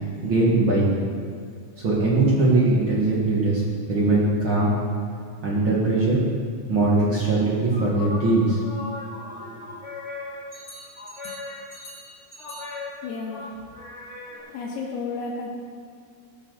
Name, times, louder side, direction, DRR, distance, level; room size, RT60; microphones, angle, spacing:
voice 1, 0.2-1.0 1.8-3.6 3.9-4.7 5.4-6.2 6.7-8.6 9.3-9.6, right 2 dB, 85° right, -6 dB, 1.1 m, -21 dB
sound 1, 7.7-14.4, left 2 dB, 30° left, 1.4 m, -38 dB
voice 2, 13.0-13.7 14.3-15.5, left 4 dB, 85° left, -5 dB, 4.3 m, -33 dB
18.5 x 6.5 x 6.7 m, 2.2 s
omnidirectional pair, 5.9 m